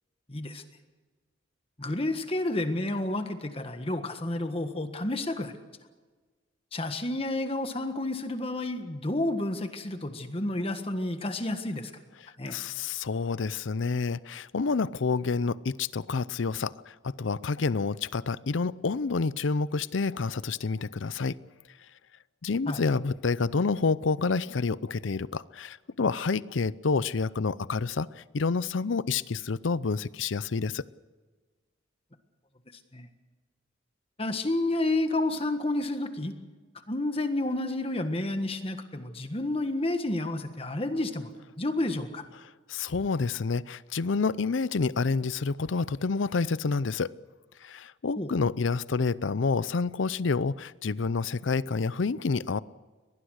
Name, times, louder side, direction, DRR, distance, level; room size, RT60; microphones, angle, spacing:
voice 1, 0.3-0.6 1.8-5.5 6.7-11.9 12.4-12.6 22.7-22.8 32.9-33.1 34.2-36.3 36.9-41.3 41.6-42.2 48.2-48.3, left 2 dB, 30° left, 7 dB, 1.6 m, -30 dB
voice 2, 12.2-21.4 22.4-30.8 42.7-47.1 47.6-52.6, left 4 dB, 75° left, 19 dB, 0.6 m, -28 dB
23.0 x 19.5 x 6.5 m, 1.4 s
head